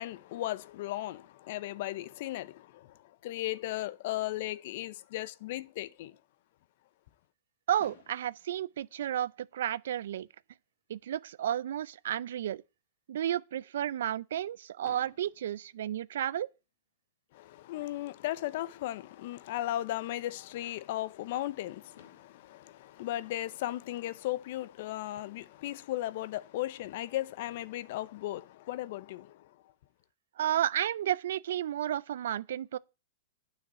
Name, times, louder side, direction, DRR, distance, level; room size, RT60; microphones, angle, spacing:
voice 1, 0.0-6.2 17.3-29.6, left 15 dB, 55° left, 0.7 m, -36 dB
voice 2, 7.7-10.3 10.9-12.6 13.1-16.5 30.4-32.8, right 11 dB, 75° right, 0.5 m, -32 dB
Fireworks, 7.8-9.8 10.6-10.7 10.9-11.1 11.4-11.5 14.8-16.7 18.4-18.5 21.5-21.6 21.9-24.2, left 8 dB, 75° left, 2.3 m, -60 dB
9.6 x 5.8 x 8.1 m
hypercardioid pair, 140°, 0 cm